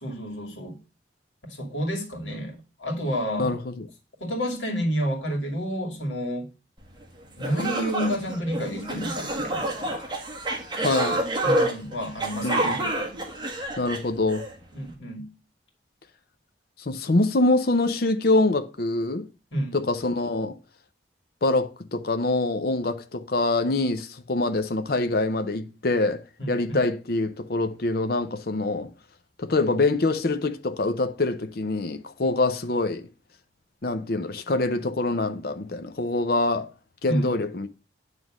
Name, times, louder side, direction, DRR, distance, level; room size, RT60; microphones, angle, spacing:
voice 1, 0.0-0.8 1.4-3.6 4.2-6.5 7.4-10.2 11.4-12.9 14.7-15.3 19.5-19.9 26.4-26.9 37.1-37.4, equal, 85° left, 2.3 m, -30 dB
voice 2, 3.4-3.9 10.8-11.2 12.4-12.7 13.8-14.5 16.8-19.3 19.7-20.6 21.4-28.9 29.4-33.1 33.8-36.7 37.0-37.7, left 2 dB, 55° left, 0.7 m, -25 dB
sound 1, 7.0-7.1 7.4-14.5, right 1 dB, 25° right, 1.6 m, -28 dB
9.3 x 3.4 x 6.2 m
head